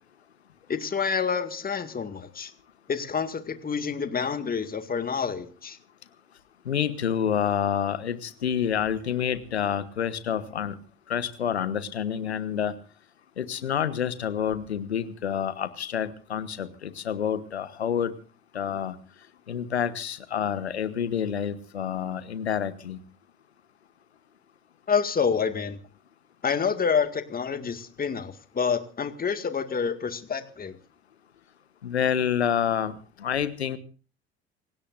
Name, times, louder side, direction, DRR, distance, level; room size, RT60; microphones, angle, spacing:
voice 1, 0.7-2.5 2.9-5.8 24.9-25.8 26.4-30.8, left 6 dB, 30° left, 9 dB, 2.0 m, -28 dB
voice 2, 6.6-10.7 11.1-12.7 13.4-18.1 18.5-18.9 19.5-23.0 31.8-33.8, left 8 dB, 85° left, 14 dB, 1.2 m, -28 dB
28.0 x 17.0 x 2.6 m, 0.38 s
figure-of-eight pair, 60°, 32 cm